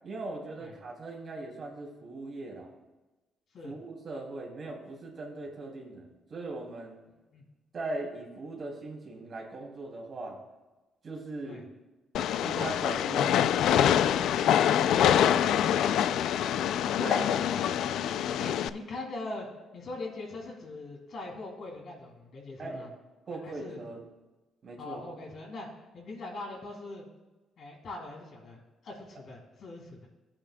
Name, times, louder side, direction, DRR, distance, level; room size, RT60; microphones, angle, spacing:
voice 1, 0.0-2.7 3.6-7.0 7.7-10.4 11.0-11.6 12.4-14.0 17.0-17.3 22.6-22.9 23.3-24.0 24.6-25.0, right 2 dB, 50° right, -1 dB, 2.7 m, -39 dB
Train, 12.1-18.7, left 10 dB, 80° left, 0.3 m, -25 dB
voice 2, 18.4-19.5 19.7-22.9 23.3-23.8 24.8-25.7 25.9-27.1 27.6-30.1, left 2 dB, 65° left, -1 dB, 2.9 m, -42 dB
17.5 x 8.8 x 2.3 m, 1.1 s
cardioid pair, 90°, 0 cm